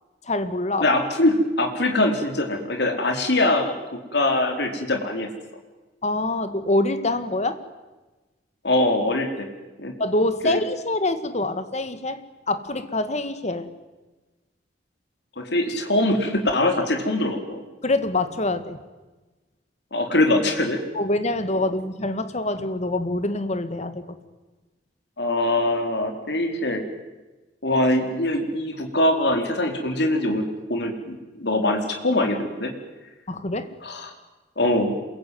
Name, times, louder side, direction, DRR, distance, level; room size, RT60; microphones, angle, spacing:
voice 1, 0.3-0.9 6.0-7.6 10.0-12.2 12.5-13.7 17.8-18.8 21.0-24.0 33.3-33.7, left 2 dB, 40° left, 11 dB, 2.0 m, -25 dB
voice 2, 0.8-5.3 8.6-9.5 9.8-9.9 10.4-10.6 15.4-17.6 19.9-20.8 25.2-26.8 27.6-32.7 33.8-34.1 34.6-35.0, left 1 dB, 70° left, 4 dB, 4.4 m, -23 dB
27.5 x 23.0 x 9.6 m, 1.2 s
head